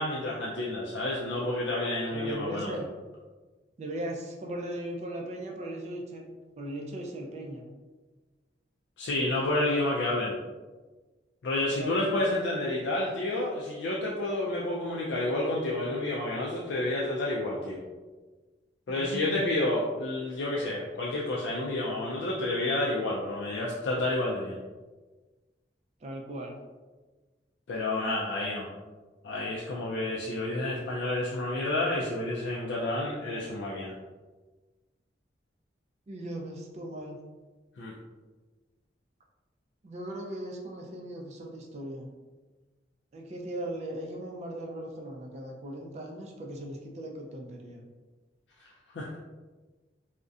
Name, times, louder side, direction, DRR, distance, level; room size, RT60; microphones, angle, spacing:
voice 1, 0.0-2.7 9.0-10.3 11.4-17.8 18.9-24.6 27.7-28.7 29.2-33.9 37.8-37.9 48.6-48.7 48.9-49.1, left 2 dB, 80° left, -4 dB, 0.3 m, -30 dB
voice 2, 2.1-2.9 3.8-7.7 11.7-12.1 18.9-19.5 26.0-26.6 36.1-37.2 39.8-42.1 43.1-47.8, right 1 dB, 40° right, 1 dB, 0.3 m, -38 dB
2.5 x 2.1 x 2.4 m, 1.3 s
head